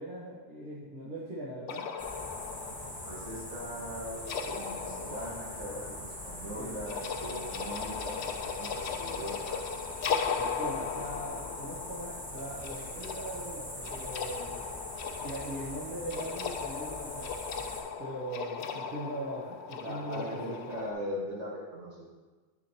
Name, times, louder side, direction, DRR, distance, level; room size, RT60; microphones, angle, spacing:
voice 1, 0.0-1.9 6.6-6.8 10.4-14.6 15.2-17.3 18.0-20.6, right 1 dB, 45° right, -6 dB, 1.4 m, -40 dB
sound 1, 1.7-20.9, left 6 dB, 70° left, 0.8 m, -38 dB
sound 2, 2.0-17.8, left 1 dB, 5° left, 1.5 m, -43 dB
voice 2, 3.0-9.6 19.7-22.1, equal, 80° right, -6 dB, 2.1 m, -40 dB
11.0 x 5.0 x 2.9 m, 1.3 s
omnidirectional pair, 1.2 m